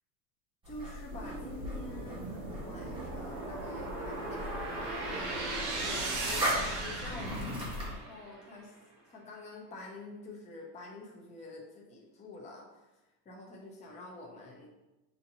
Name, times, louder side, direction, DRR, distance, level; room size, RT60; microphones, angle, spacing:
sound 1, 0.6-8.0, equal, 10° right, 0.9 m, -39 dB
voice 1, 0.7-2.4 2.6-8.7 9.1-12.9 13.2-14.7, left 2 dB, 15° left, -2 dB, 0.7 m, -47 dB
sound 2, 1.1-8.4, right 2 dB, 25° right, 0.4 m, -38 dB
6.7 x 2.8 x 2.7 m, 1.0 s
supercardioid pair, 150°, 48 cm